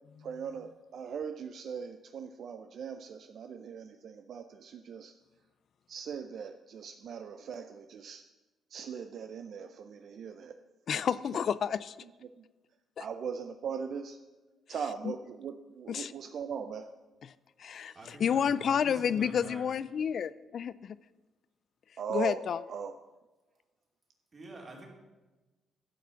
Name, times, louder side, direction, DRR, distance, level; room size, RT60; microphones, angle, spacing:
voice 1, 0.2-5.1 5.9-8.2 8.7-10.6 10.9-11.0 11.3-11.5 12.2-12.4 13.0-14.2 14.7-16.9 22.0-22.9, right 7 dB, 60° right, 8 dB, 0.5 m, -40 dB
voice 2, 10.9-12.0 13.0-13.1 15.0-15.1 15.9-16.1 17.6-21.0 22.1-22.6, left 8 dB, 60° left, 17 dB, 0.3 m, -30 dB
voice 3, 17.9-19.6 24.3-24.9, right 1 dB, 35° right, -1 dB, 3.0 m, -47 dB
11.5 x 6.1 x 7.0 m, 1.2 s
cardioid pair, 90°, 0 cm